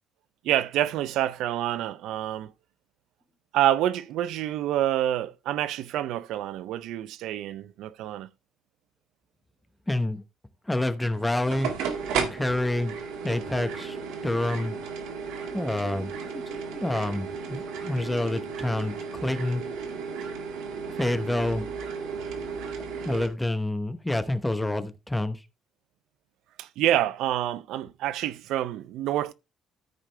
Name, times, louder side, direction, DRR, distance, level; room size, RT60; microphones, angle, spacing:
voice 1, 0.4-2.5 3.5-8.3 26.6-29.3, right 12 dB, 75° right, 0.5 m, -27 dB
voice 2, 9.9-10.2 10.7-11.7 12.3-12.9 13.2-14.0 14.2-14.8 15.5-19.6 21.0-21.7 22.8-25.4, left 1 dB, 5° left, 0.9 m, -28 dB
sound 1, 11.1-23.3, right 5 dB, 90° right, 2.0 m, -34 dB
13.5 x 4.9 x 3.3 m
cardioid pair, 150°, 0 cm